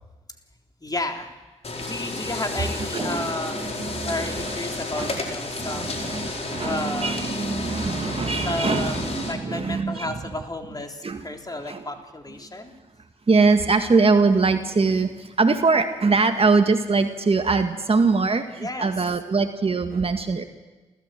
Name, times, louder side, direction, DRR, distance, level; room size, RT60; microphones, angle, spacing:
voice 1, 0.8-1.3 1.8-6.0 6.6-7.2 8.4-12.7 18.6-18.9, left 2 dB, 25° left, 3 dB, 3.7 m, -32 dB
sound 1, 1.6-9.3, left 2 dB, 50° left, 4.7 m, -32 dB
voice 2, 2.6-4.6 4.9-5.2 5.6-10.3 11.0-11.3 11.7-11.8 13.3-20.4, right 4 dB, 45° right, 7 dB, 2.0 m, -23 dB
28.5 x 15.0 x 7.9 m, 1.2 s
supercardioid pair, 45°, 14 cm